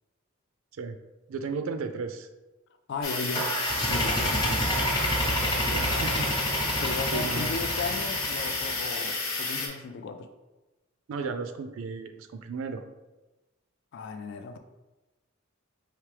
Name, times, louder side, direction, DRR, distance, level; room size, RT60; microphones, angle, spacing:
voice 1, 1.3-2.3 4.7-4.8 5.7-6.3 7.1-7.5 11.1-12.8, right 4 dB, 80° right, 8 dB, 0.4 m, -34 dB
voice 2, 2.9-3.6 3.9-4.6 6.8-10.3 13.9-14.6, left 4 dB, 60° left, 7 dB, 0.3 m, -35 dB
sound 1, 3.0-9.7, left 3 dB, 90° left, 1.0 m, -31 dB
sound 2, 3.3-8.9, equal, 20° left, 0.8 m, -29 dB
4.7 x 3.2 x 3.2 m, 1.1 s
head